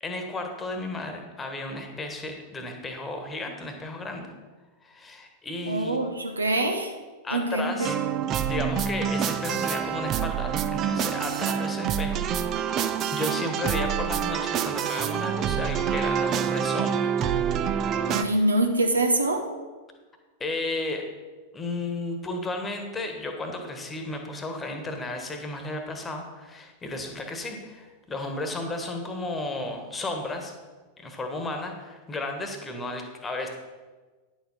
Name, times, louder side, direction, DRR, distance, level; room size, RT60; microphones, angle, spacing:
voice 1, 0.0-4.3 4.8-6.0 7.2-8.0 8.4-17.1 18.2-18.3 20.4-21.0 21.5-30.5 31.0-33.5, left 2 dB, 15° left, 4 dB, 1.4 m, -33 dB
voice 2, 5.7-6.9 7.3-7.7 18.1-19.5, right 2 dB, 80° right, 5 dB, 0.9 m, -24 dB
sound 1, 7.8-18.2, right 8 dB, 35° right, 0.5 m, -27 dB
9.9 x 7.1 x 4.2 m, 1.3 s
figure-of-eight pair, 90°, 0 cm